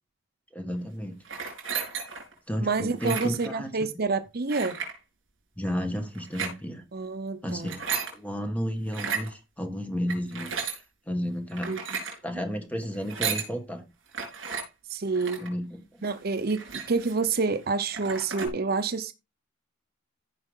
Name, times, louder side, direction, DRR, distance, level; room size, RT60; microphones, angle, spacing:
voice 1, 0.5-1.5 1.7-1.9 2.5-3.7 5.6-6.8 7.4-10.8 11.1-11.7 12.2-13.8 15.4-16.0, equal, 5° left, 1.8 m, -32 dB
sound 1, 1.2-2.3 2.9-3.5 4.5-4.9 6.1-6.5 7.5-8.1 8.9-9.3 10.1-10.8 11.5-12.2 13.0-13.5 14.1-14.6 15.1-15.5 16.0-16.1 16.4-17.2 17.6-17.7 17.9-18.5, right 6 dB, 70° right, 4.6 m, -33 dB
voice 2, 2.6-4.8 6.9-7.7 11.7-11.8 14.9-15.4 16.0-19.1, right 4 dB, 50° right, 0.8 m, -28 dB
15.0 x 5.4 x 3.8 m
head